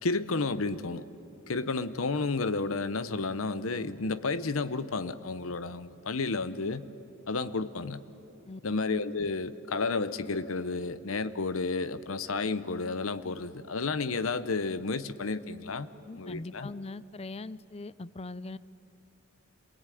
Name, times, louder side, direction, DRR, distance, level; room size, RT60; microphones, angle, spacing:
voice 1, 0.0-1.0 1.5-6.9 7.3-8.0 8.6-15.9 16.2-16.7, left 3 dB, 85° left, 13 dB, 0.8 m, -31 dB
voice 2, 16.1-18.6, left 2 dB, 30° left, 17 dB, 0.5 m, -41 dB
27.0 x 20.0 x 9.2 m, 2.8 s
head